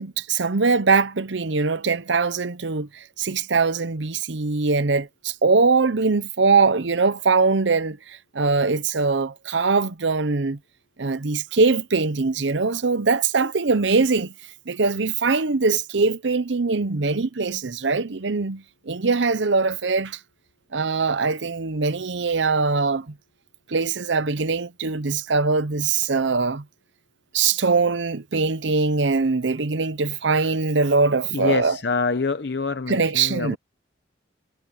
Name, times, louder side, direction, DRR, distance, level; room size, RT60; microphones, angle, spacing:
voice 1, 0.0-10.6 11.0-14.3 14.7-20.2 20.7-23.1 23.7-26.6 27.3-31.8 32.9-33.6, right 4 dB, 75° right, 0.8 m, -22 dB
voice 2, 31.3-33.6, left 4 dB, 60° left, 0.8 m, -26 dB
head